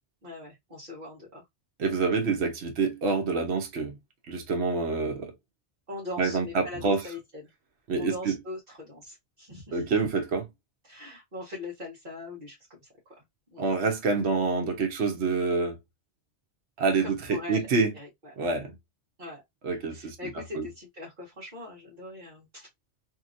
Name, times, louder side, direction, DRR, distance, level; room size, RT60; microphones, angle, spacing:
voice 1, 0.2-1.4 5.9-7.2 7.9-9.9 10.8-12.9 13.5-13.6 17.0-17.7 17.9-18.3 19.2-19.4 19.9-22.7, left 2 dB, 45° right, 1.3 m, -41 dB
voice 2, 1.8-4.0 4.3-5.3 6.2-7.0 7.9-8.4 9.7-10.5 13.6-15.8 16.8-17.9 18.4-18.8 19.6-20.2 20.5-20.7, right 4 dB, 65° right, 1.1 m, -27 dB
2.8 x 2.8 x 2.4 m
omnidirectional pair, 1.2 m